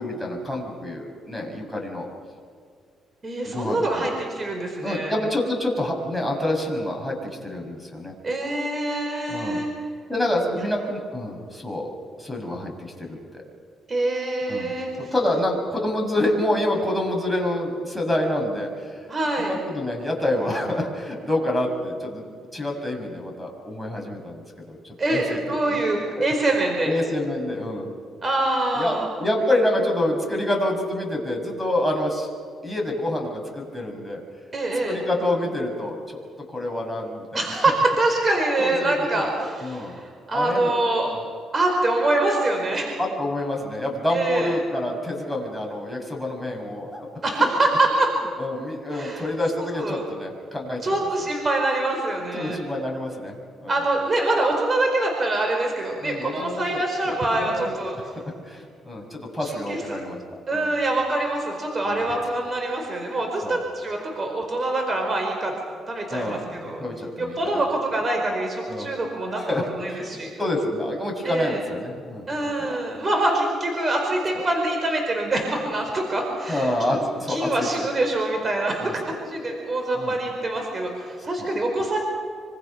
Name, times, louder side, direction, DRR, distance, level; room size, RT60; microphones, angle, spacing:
voice 1, 0.0-2.1 3.4-4.1 4.8-7.2 7.4-8.1 9.3-9.6 10.1-11.9 12.2-13.4 14.5-14.7 15.0-19.0 19.4-22.2 22.5-25.4 25.7-25.8 26.8-27.9 28.7-32.3 32.6-34.2 34.8-36.2 36.5-37.6 38.6-38.9 39.4-39.9 40.3-40.7 43.0-47.1 47.3-47.5 48.4-50.9 52.3-53.8 56.0-56.8 57.0-57.7 58.0-60.7 61.8-62.1 63.4-63.6 66.1-67.6 68.7-68.9 69.3-70.1 70.4-72.7 76.5-77.7 78.8-78.9 79.9-80.2 81.4-81.5, left 1 dB, ahead, 2 dB, 6.7 m, -27 dB
voice 2, 3.2-5.1 8.2-9.7 10.5-10.7 13.9-15.1 19.1-19.5 25.0-26.9 28.2-29.1 34.5-35.0 37.3-41.1 41.5-42.9 44.1-44.5 47.2-48.1 48.9-49.2 49.6-50.0 50.8-52.6 53.7-58.0 59.4-60.0 60.5-65.5 65.9-66.8 67.2-69.4 69.7-70.3 71.2-71.6 72.3-82.0, right 2 dB, 35° right, 2 dB, 4.8 m, -25 dB
26.0 x 26.0 x 5.9 m, 2.2 s
cardioid pair, 90°, 0 cm